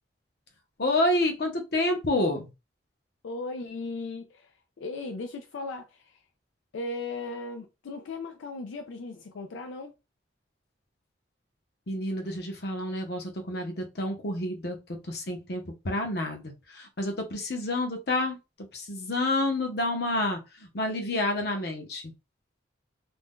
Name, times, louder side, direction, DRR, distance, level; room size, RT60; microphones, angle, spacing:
voice 1, 0.8-2.5 11.9-14.8 15.0-18.4 18.7-22.1, left 1 dB, 55° left, 0.8 m, -29 dB
voice 2, 3.2-6.2 6.7-9.9, left 3 dB, 80° left, 0.4 m, -37 dB
2.6 x 2.2 x 3.5 m
head